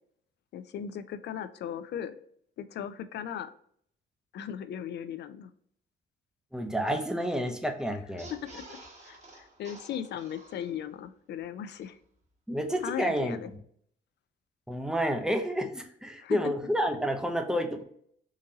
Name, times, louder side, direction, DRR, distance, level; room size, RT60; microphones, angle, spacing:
voice 1, 0.5-2.1 2.6-3.5 4.3-5.5 8.5-8.8 9.0-12.0 12.8-13.5 16.2-16.4, left 9 dB, 60° left, 12 dB, 0.4 m, -37 dB
voice 2, 6.5-8.3 12.5-13.4 14.7-17.8, equal, 5° right, 6 dB, 0.6 m, -30 dB
sound 1, 8.0-11.0 11.4-11.5 11.7-11.8, right 2 dB, 35° right, 1.2 m, -50 dB
3.8 x 2.6 x 2.8 m, 0.66 s
cardioid pair, 90°, 20 cm